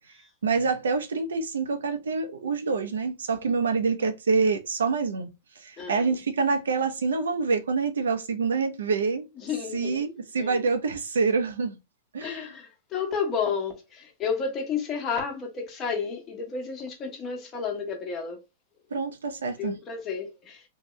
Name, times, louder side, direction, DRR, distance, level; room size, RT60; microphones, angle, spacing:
voice 1, 0.4-9.3 9.7-11.8 12.1-12.5 18.9-19.8, right 4 dB, 90° right, 0.6 m, -26 dB
voice 2, 5.8-6.1 9.4-10.0 10.4-10.6 12.2-18.4 19.6-20.6, left 6 dB, 25° left, 1.0 m, -31 dB
2.7 x 2.3 x 3.0 m
hypercardioid pair, 125°, 0 cm